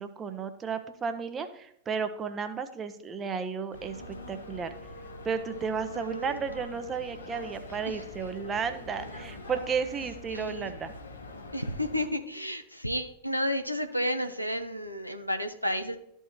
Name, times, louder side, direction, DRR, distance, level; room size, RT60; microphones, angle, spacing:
voice 1, 0.0-4.0 4.3-4.7 5.2-10.9, right 6 dB, 20° right, 9 dB, 0.8 m, -33 dB
sound 1, 3.7-12.1, left 2 dB, 75° left, 1.2 m, -44 dB
Wind instrument woodwind instrument, 3.7-9.4, left 1 dB, 60° left, 1.5 m, -52 dB
voice 2, 5.9-6.4 7.9-8.0 10.3-10.7 11.5-16.0, equal, 90° right, 6 dB, 0.6 m, -32 dB
13.0 x 4.6 x 3.0 m, 0.71 s
figure-of-eight pair, 90°, 0 cm